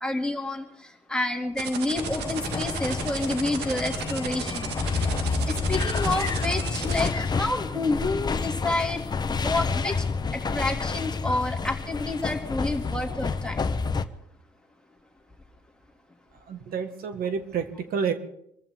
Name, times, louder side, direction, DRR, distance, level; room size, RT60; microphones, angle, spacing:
voice 1, 0.0-5.1 5.5-9.0 9.4-10.0 10.5-13.6, left 2 dB, 5° left, 1 dB, 2.5 m, -29 dB
sound 1, 1.6-7.1, right 8 dB, 80° right, 1.9 m, -34 dB
sound 2, 2.0-14.0, left 4 dB, 25° left, 0.9 m, -29 dB
voice 2, 16.4-18.1, right 6 dB, 60° right, 7 dB, 1.8 m, -29 dB
26.0 x 15.0 x 3.7 m, 0.73 s
cardioid pair, 110°, 17 cm